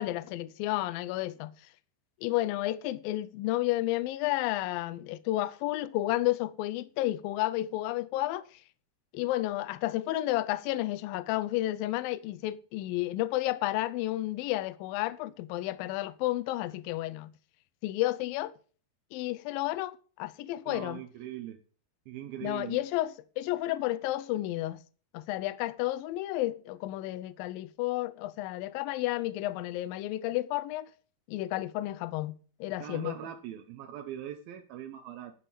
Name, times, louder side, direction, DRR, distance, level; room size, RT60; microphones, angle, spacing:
voice 1, 0.0-1.5 2.2-8.4 9.1-17.3 17.8-18.5 19.1-21.0 22.4-24.8 25.1-30.9 31.3-32.3 32.6-33.2, left 16 dB, 80° left, 2.3 m, -31 dB
voice 2, 20.7-21.6 22.1-22.8 32.8-35.3, right 11 dB, 75° right, 2.6 m, -41 dB
10.0 x 7.6 x 6.9 m
omnidirectional pair, 4.5 m